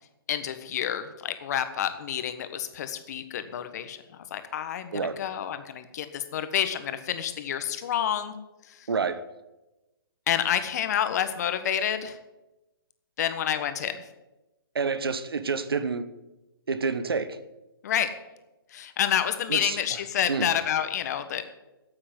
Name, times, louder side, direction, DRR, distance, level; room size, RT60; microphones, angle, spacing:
voice 1, 0.3-8.3 8.7-8.9 10.3-12.2 13.2-14.0 17.8-18.1 18.7-21.5, left 9 dB, 45° left, 10 dB, 1.4 m, -29 dB
voice 2, 8.9-9.2 14.7-16.1 16.7-17.4 19.5-19.8 20.3-20.5, right 5 dB, 75° right, 12 dB, 1.3 m, -28 dB
9.0 x 8.5 x 9.6 m, 1.0 s
figure-of-eight pair, 140°, 12 cm